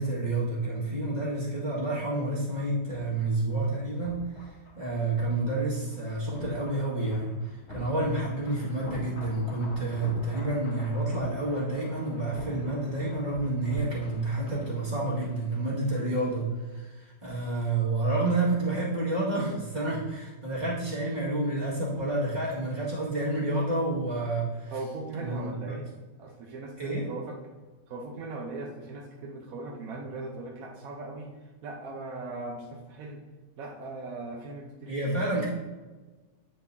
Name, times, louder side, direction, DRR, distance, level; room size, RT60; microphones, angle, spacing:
voice 1, 0.0-4.5 4.8-24.7 25.2-25.8 26.8-27.1 34.9-35.4, right 2 dB, 25° right, -7 dB, 1.8 m, -29 dB
sound 1, 2.5-16.3 16.6-16.7, left 2 dB, 40° left, 1.2 m, -46 dB
voice 2, 24.7-25.9 26.2-27.4 27.9-31.3 31.6-33.2 33.6-35.3, right 2 dB, 55° right, -1 dB, 1.1 m, -39 dB
9.1 x 5.6 x 2.7 m, 1.3 s
omnidirectional pair, 2.1 m